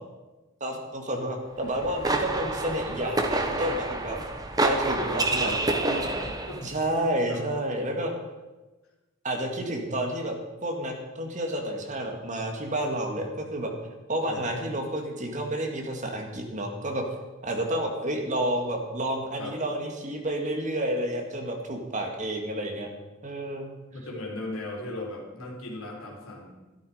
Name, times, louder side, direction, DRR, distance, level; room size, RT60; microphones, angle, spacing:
voice 1, 0.6-4.2 4.6-5.6 5.8-6.0 6.6-8.1 9.2-10.4 10.6-13.7 14.1-17.1 17.4-22.9 23.2-23.7, right 1 dB, 35° right, 2 dB, 2.1 m, -30 dB
sound 1, 1.6-6.7, right 2 dB, 20° right, 1.1 m, -28 dB
voice 2, 4.8-6.6 7.3-7.4 14.2-14.6 19.3-19.6 23.9-26.5, left 1 dB, 85° left, 0 dB, 3.3 m, -37 dB
13.0 x 12.5 x 5.1 m, 1.1 s
head